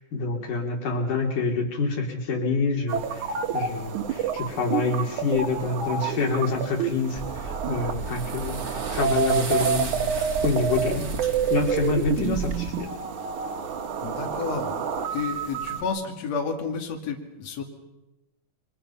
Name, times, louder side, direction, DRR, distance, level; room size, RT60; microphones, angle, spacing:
voice 1, 0.1-3.2 3.5-12.9, left 4 dB, 80° left, 2 dB, 4.4 m, -27 dB
sound 1, 2.9-15.8, right 7 dB, 70° right, 3.1 m, -29 dB
sound 2, 7.2-12.7, right 4 dB, 40° right, 0.9 m, -33 dB
voice 2, 14.0-14.8 15.1-17.6, left 5 dB, 55° left, 1 dB, 3.7 m, -31 dB
29.0 x 24.5 x 5.7 m, 0.95 s
omnidirectional pair, 3.6 m